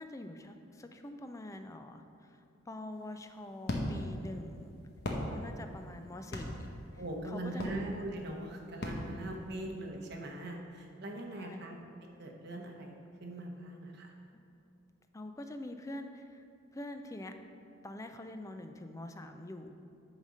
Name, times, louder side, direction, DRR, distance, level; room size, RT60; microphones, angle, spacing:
voice 1, 0.0-4.8 5.3-7.8 11.3-11.7 14.3-14.4 15.1-16.4 16.7-17.3 17.8-19.7, left 1 dB, 15° left, 7 dB, 0.4 m, -45 dB
sound 1, 2.9-9.9, left 1 dB, 60° left, 1.0 m, -40 dB
voice 2, 7.0-11.7 12.2-13.0 13.2-14.1, right 1 dB, 60° right, 1 dB, 1.0 m, -41 dB
8.6 x 4.0 x 6.3 m, 2.6 s
head